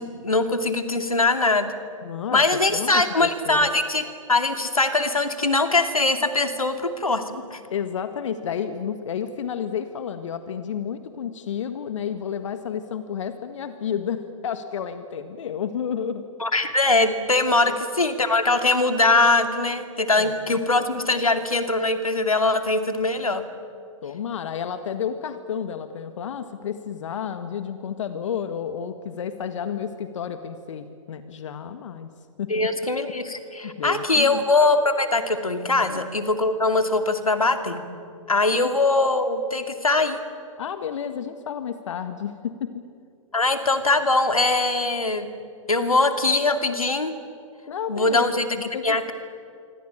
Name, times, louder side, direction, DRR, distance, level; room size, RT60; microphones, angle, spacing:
voice 1, 0.0-1.7 2.3-4.0 4.3-7.6 16.4-23.4 32.5-37.8 38.3-40.2 43.3-45.3 45.7-47.1 47.9-49.1, left 2 dB, 90° left, 7 dB, 2.6 m, -22 dB
voice 2, 2.0-2.4 2.7-3.7 7.7-16.3 17.6-17.8 20.2-20.5 24.0-32.1 32.4-32.7 33.6-34.4 35.8-36.0 40.6-42.7 47.7-49.1, left 8 dB, 60° left, 9 dB, 1.7 m, -31 dB
26.5 x 25.0 x 9.0 m, 2.4 s
figure-of-eight pair, 120°, 18 cm